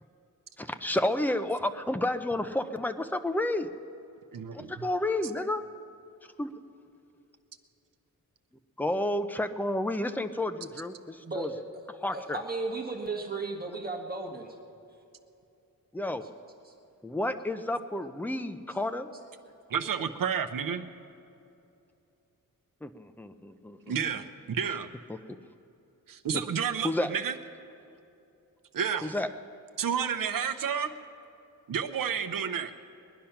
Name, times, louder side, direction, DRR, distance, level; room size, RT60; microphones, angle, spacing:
voice 1, 0.6-3.7 4.5-5.6 6.4-6.5 8.8-11.5 11.9-12.4 15.9-16.2 17.0-19.1 22.8-24.0 25.1-25.2 26.8-27.1 29.0-29.3, left 1 dB, 5° left, 9 dB, 0.5 m, -31 dB
voice 2, 4.3-4.7 19.7-20.8 23.9-24.9 26.1-27.3 28.7-29.1 29.8-30.9 31.7-32.7, right 7 dB, 70° right, 9 dB, 0.8 m, -30 dB
voice 3, 11.2-11.6 12.1-14.5, right 3 dB, 25° right, 0 dB, 1.4 m, -35 dB
21.0 x 10.0 x 5.8 m, 2.7 s
wide cardioid pair, 165°, 35 cm